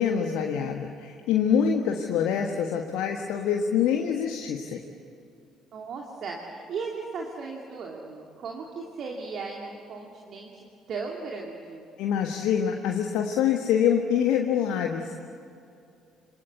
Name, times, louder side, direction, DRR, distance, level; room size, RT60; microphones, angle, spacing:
voice 1, 0.0-4.8 12.0-15.2, left 8 dB, 60° left, 3 dB, 1.5 m, -25 dB
voice 2, 5.7-11.9, right 4 dB, 50° right, 0 dB, 2.8 m, -37 dB
27.5 x 25.0 x 8.3 m, 2.5 s
figure-of-eight pair, 50°, 0 cm